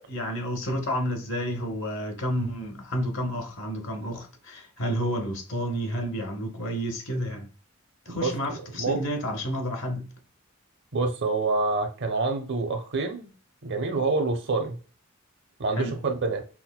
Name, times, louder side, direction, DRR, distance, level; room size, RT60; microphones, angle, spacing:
voice 1, 0.1-7.5 8.1-10.0 15.8-15.9, equal, 60° left, 0.9 m, -30 dB
voice 2, 8.1-9.0 10.9-13.3 13.6-14.8 15.6-16.4, right 3 dB, 55° right, 0.6 m, -27 dB
5.8 x 2.2 x 2.2 m
head